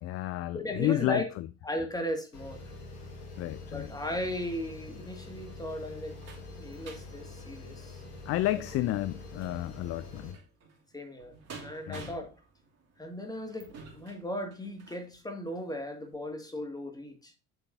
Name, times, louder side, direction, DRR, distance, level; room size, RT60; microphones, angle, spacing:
voice 1, 0.0-1.2 3.4-3.9 8.3-10.4 11.9-12.1, left 15 dB, 35° left, 0.4 m, -31 dB
voice 2, 0.5-1.3 1.6-2.6 3.7-6.2 6.5-8.0 10.9-11.3 11.6-12.3 13.0-17.3, left 1 dB, 10° left, 2.2 m, -36 dB
sound 1, 2.3-10.3, left 3 dB, 85° left, 1.8 m, -45 dB
sound 2, 5.3-15.1 15.7-15.8 16.1-16.2, right 4 dB, 35° right, 2.9 m, -52 dB
7.9 x 6.6 x 2.8 m
figure-of-eight pair, 60°, 46 cm